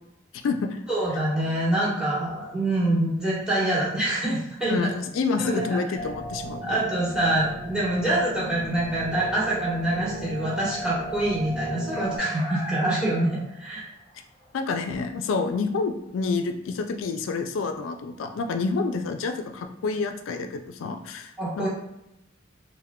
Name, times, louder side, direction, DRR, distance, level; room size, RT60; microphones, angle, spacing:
voice 1, 0.3-0.8 4.7-6.8 14.5-21.7, left 4 dB, 90° left, 6 dB, 0.3 m, -28 dB
voice 2, 0.9-4.9 5.4-5.8 6.6-13.8 21.4-21.7, right 1 dB, 5° right, -8 dB, 1.0 m, -25 dB
sound 1, 6.0-12.2, right 1 dB, 75° right, 1.0 m, -36 dB
sound 2, 11.9-14.1 14.4-14.5 15.7-15.8, left 1 dB, 30° left, 0.5 m, -38 dB
3.5 x 2.1 x 2.2 m, 0.85 s
head